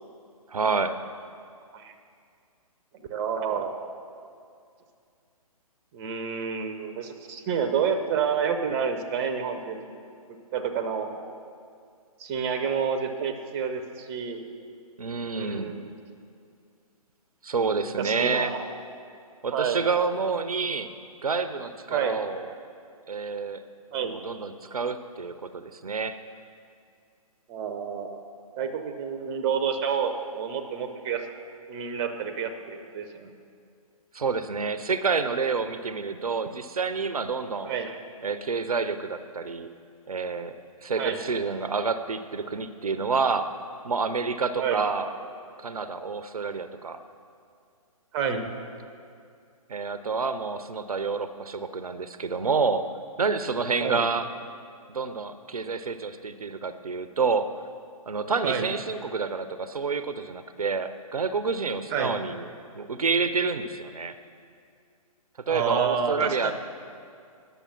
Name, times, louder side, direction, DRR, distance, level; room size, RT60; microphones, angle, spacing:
voice 1, 0.5-1.0 15.0-15.7 17.4-18.5 19.4-20.9 21.2-22.5 23.1-23.6 24.0-26.2 34.1-37.7 38.2-39.7 40.1-40.5 40.8-43.5 43.8-45.1 45.6-47.0 49.7-52.9 53.2-54.3 54.9-57.5 58.1-62.4 62.7-64.2 65.5-66.5, right 4 dB, 75° right, 11 dB, 0.5 m, -28 dB
voice 2, 3.1-3.7 5.9-9.8 10.5-11.1 12.2-14.5 15.3-15.9 17.8-18.6 19.5-19.8 21.9-22.2 23.9-24.1 27.5-28.2 28.6-31.2 31.7-33.3 37.6-38.0 41.0-41.2 44.6-44.8 48.1-48.5 53.8-54.1 58.4-58.7 61.9-62.1 65.5-66.5, right 7 dB, 20° right, 7 dB, 0.7 m, -29 dB
10.0 x 6.9 x 5.8 m, 2.3 s
figure-of-eight pair, 130°, 19 cm